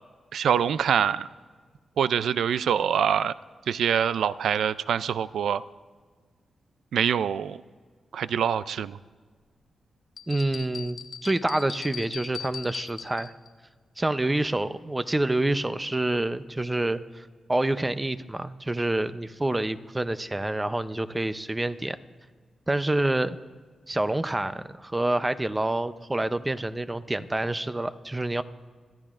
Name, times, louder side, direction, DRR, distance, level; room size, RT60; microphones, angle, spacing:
voice 1, 0.3-1.3 2.0-3.3 3.7-5.6 6.9-7.6 8.1-9.0, right 8 dB, 85° right, 16 dB, 0.3 m, -25 dB
sound 1, 10.2-13.5, left 7 dB, 65° left, 0.8 m, -40 dB
voice 2, 10.3-13.3 14.0-17.2 17.5-22.0 22.7-23.4 23.9-28.4, right 2 dB, 15° right, 12 dB, 0.6 m, -27 dB
26.5 x 13.5 x 2.5 m, 1.5 s
wide cardioid pair, 105°, 0 cm